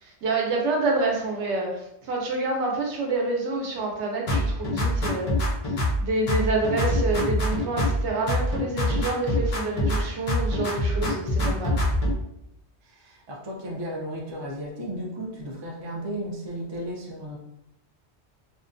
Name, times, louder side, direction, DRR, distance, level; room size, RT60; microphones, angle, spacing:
voice 1, 0.0-5.3 5.8-11.8, right 3 dB, 75° right, 0 dB, 0.9 m, -27 dB
sound 1, 4.3-6.0 6.3-8.0 8.3-10.0 10.3-12.1, left 1 dB, 55° left, 0.4 m, -24 dB
voice 2, 12.8-17.4, equal, 45° right, -2 dB, 0.3 m, -34 dB
2.5 x 2.2 x 2.5 m, 0.82 s
omnidirectional pair, 1.2 m